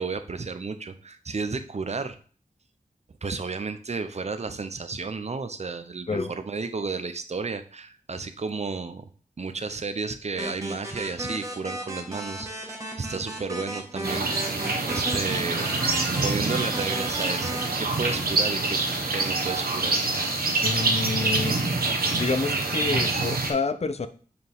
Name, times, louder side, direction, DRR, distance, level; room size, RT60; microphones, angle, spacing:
voice 1, 0.0-2.2 3.2-9.1 9.4-12.7 13.0-14.3 14.9-15.8 16.2-18.8 19.1-20.0, right 4 dB, 45° right, 10 dB, 0.6 m, -32 dB
sound 1, 10.4-17.7, right 1 dB, 20° right, 1.4 m, -35 dB
sound 2, 14.0-23.5, right 3 dB, 85° right, 1.1 m, -26 dB
voice 2, 20.6-21.6 22.1-24.1, left 4 dB, 45° left, 10 dB, 0.5 m, -28 dB
6.5 x 4.5 x 3.5 m, 0.42 s
wide cardioid pair, 80°, 15 cm